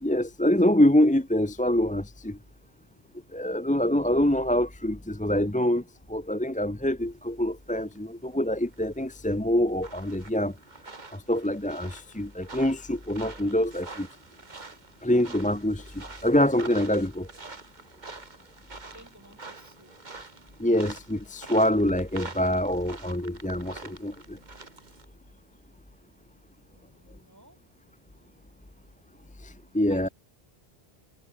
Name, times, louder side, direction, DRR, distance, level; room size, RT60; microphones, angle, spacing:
voice 1, 0.0-2.4 3.3-5.8 6.1-10.5 11.1-14.1 15.0-17.3 20.6-24.4 29.4-30.1, left 1 dB, 10° left, 0.8 m, -25 dB
sound 1, 7.9-25.1, right 3 dB, 45° right, 2.1 m, -46 dB
voice 2, 18.9-20.0 26.7-27.6 29.9-30.1, right 1 dB, 15° right, 7.3 m, -53 dB
omnidirectional pair, 1.1 m